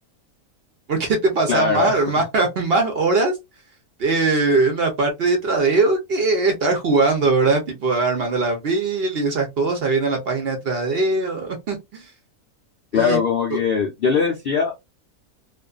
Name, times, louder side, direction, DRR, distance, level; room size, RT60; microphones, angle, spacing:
voice 1, 0.9-3.3 4.0-12.1 12.9-13.2 13.5-13.6, right 3 dB, 55° right, 0.7 m, -21 dB
voice 2, 1.5-2.0 12.9-14.8, left 6 dB, 90° left, 0.5 m, -21 dB
2.5 x 2.4 x 2.3 m
omnidirectional pair, 1.6 m